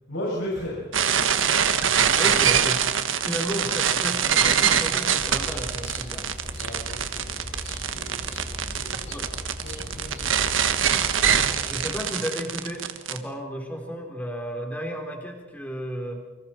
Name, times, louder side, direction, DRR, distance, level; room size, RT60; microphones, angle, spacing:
voice 1, 0.1-1.3 6.5-7.3 7.7-10.3 10.6-11.7, left 1 dB, 90° left, -6 dB, 7.5 m, -37 dB
sound 1, 0.9-13.2, right 8 dB, 80° right, 1.5 m, -23 dB
voice 2, 2.2-2.9 3.2-6.3 9.1-9.3 11.7-16.2, equal, 10° left, 2 dB, 3.7 m, -33 dB
sound 2, 5.2-11.9, left 1 dB, 35° left, 4.4 m, -38 dB
29.0 x 25.0 x 4.5 m, 1.2 s
head